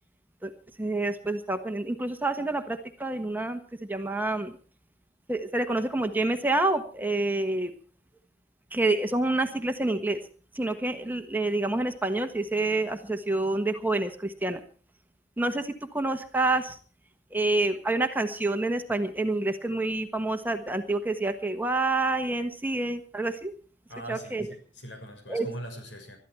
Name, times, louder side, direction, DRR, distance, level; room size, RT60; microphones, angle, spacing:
voice 1, 0.8-3.6 3.9-4.5 5.3-7.7 8.7-10.2 10.6-14.6 15.4-16.8 17.3-23.5 24.1-24.4 25.3-25.5, right 2 dB, 10° right, 6 dB, 1.3 m, -28 dB
voice 2, 23.9-26.2, equal, 75° left, 4 dB, 6.3 m, -41 dB
21.5 x 13.0 x 4.6 m, 0.39 s
head